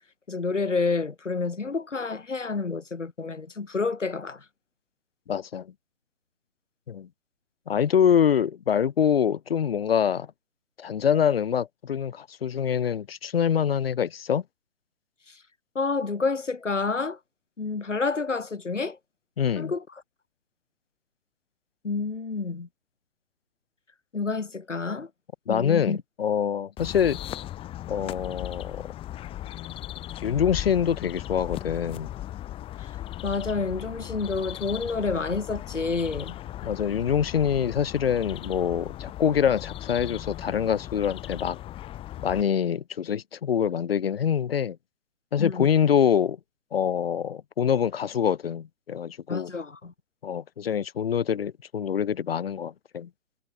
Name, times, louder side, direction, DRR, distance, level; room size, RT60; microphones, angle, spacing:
voice 1, 0.3-4.4 15.3-15.4 15.7-17.2 17.6-19.0 19.6-19.8 21.8-22.7 24.1-25.1 25.5-26.0 32.8-33.0 33.2-36.4 45.4-45.7 49.3-49.9, left 4 dB, 70° left, 5.6 m, -29 dB
voice 2, 5.3-5.7 6.9-7.1 7.7-10.3 10.8-14.4 19.4-19.7 25.5-27.2 27.9-28.9 30.2-32.1 36.6-41.6 42.2-44.8 45.3-46.4 46.7-49.5 50.2-53.1, left 8 dB, 50° left, 2.6 m, -25 dB
sound 1, 26.8-42.4, left 13 dB, 15° left, 2.1 m, -37 dB
figure-of-eight pair, 130°, 38 cm